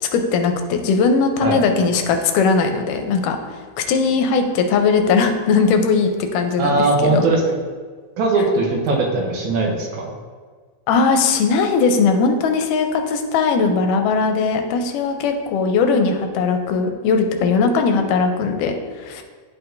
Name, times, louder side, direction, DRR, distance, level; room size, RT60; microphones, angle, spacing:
voice 1, 0.0-3.4 3.8-7.2 10.9-19.2, left 4 dB, 85° left, 5 dB, 2.2 m, -19 dB
voice 2, 6.6-7.4 8.2-10.1, right 3 dB, 75° right, 0 dB, 2.2 m, -19 dB
11.0 x 4.4 x 2.6 m, 1.5 s
omnidirectional pair, 3.7 m